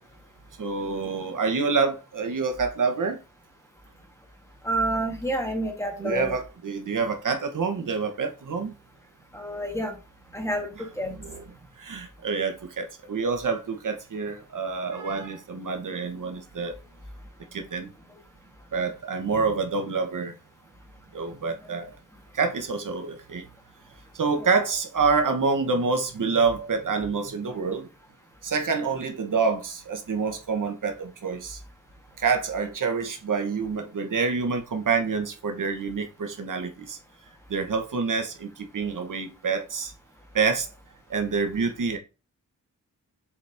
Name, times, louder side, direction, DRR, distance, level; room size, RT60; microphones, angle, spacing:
voice 1, 0.6-3.2 6.0-8.7 11.0-11.4 11.8-16.7 17.5-17.9 18.7-20.3 21.1-21.9 22.3-23.4 24.1-27.9 28.4-31.6 32.2-37.0 37.5-39.9 40.3-40.7 41.1-42.0, right 4 dB, 65° right, 1.3 m, -27 dB
voice 2, 4.6-6.3 9.3-10.0 10.3-11.1, right 1 dB, 10° left, 2.0 m, -28 dB
7.3 x 4.2 x 3.5 m
wide cardioid pair, 135°, 33 cm